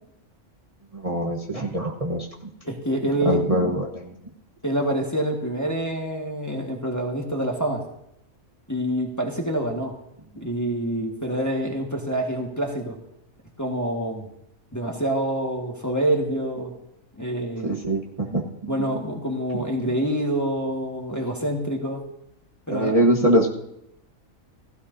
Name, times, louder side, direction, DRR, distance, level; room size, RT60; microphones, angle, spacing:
voice 1, 1.0-2.3 3.2-4.1 17.6-18.7 22.7-23.5, right 1 dB, 25° right, -2 dB, 1.2 m, -23 dB
voice 2, 2.6-3.4 4.6-7.8 8.7-10.0 10.4-13.0 13.6-14.3 14.7-16.7 17.2-17.8 18.7-22.0 22.7-23.0, right 1 dB, 15° left, 0 dB, 1.6 m, -26 dB
16.0 x 16.0 x 2.7 m, 0.80 s
omnidirectional pair, 1.4 m